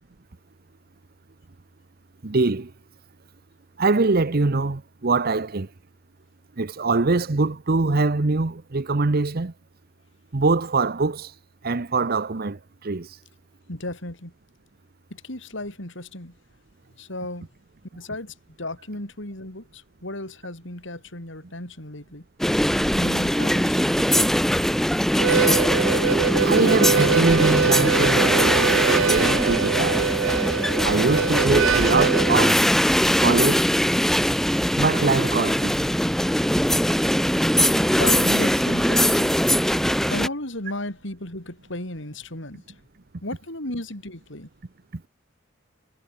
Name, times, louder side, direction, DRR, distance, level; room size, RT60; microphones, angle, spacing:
voice 1, 2.2-2.7 3.8-5.7 6.6-9.5 10.3-11.3 11.6-13.1 25.9-26.0 26.4-30.0 30.8-32.7 33.2-33.7 34.8-35.7, right 3 dB, 50° right, 0.8 m, -23 dB
voice 2, 13.7-14.3 15.1-16.4 17.0-17.5 17.9-22.3 23.0-24.3 38.0-39.4 39.8-42.8 43.2-44.5, left 1 dB, 65° left, 5.0 m, -34 dB
sound 1, 22.4-40.3, equal, ahead, 1.5 m, -21 dB
Harmonica, 25.1-32.5, right 6 dB, 80° right, 0.6 m, -23 dB
head